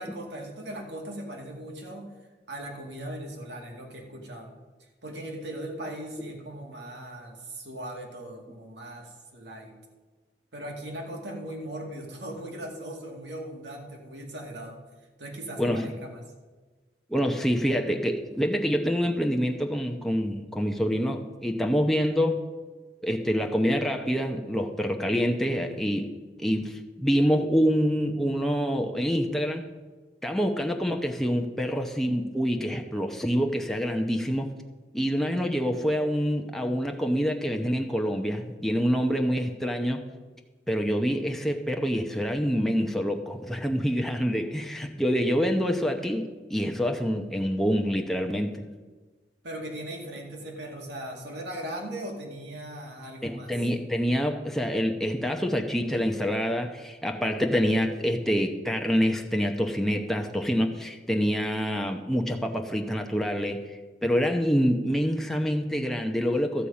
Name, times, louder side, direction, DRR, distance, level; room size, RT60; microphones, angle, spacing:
voice 1, 0.0-2.1 2.5-4.6 5.0-9.8 10.5-14.8 15.2-16.2 49.4-53.6, right 1 dB, 75° right, 1 dB, 2.2 m, -38 dB
voice 2, 15.6-15.9 17.1-22.4 23.0-26.1 26.4-29.7 30.2-34.5 34.9-40.1 40.7-48.6 53.2-66.7, equal, ahead, 3 dB, 0.8 m, -26 dB
13.0 x 5.3 x 8.6 m, 1.3 s
head